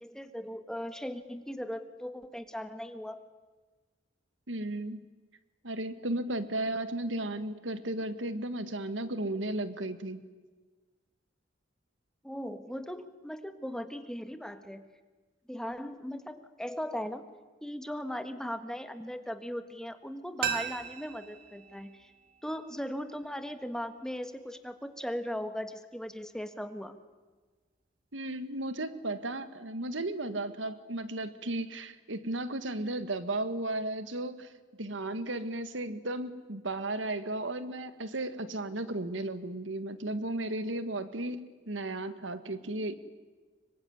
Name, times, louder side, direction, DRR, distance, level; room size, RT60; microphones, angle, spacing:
voice 1, 0.0-3.2 12.2-14.8 15.5-17.2 17.6-22.1 22.4-26.9, equal, 5° left, 9 dB, 1.5 m, -38 dB
voice 2, 4.5-5.0 5.6-10.2 28.1-34.5 34.8-42.9, right 2 dB, 90° right, 12 dB, 1.7 m, -34 dB
sound 1, 20.4-23.2 23.5-23.6, right 8 dB, 50° right, 2.2 m, -38 dB
26.0 x 23.0 x 9.7 m, 1.4 s
head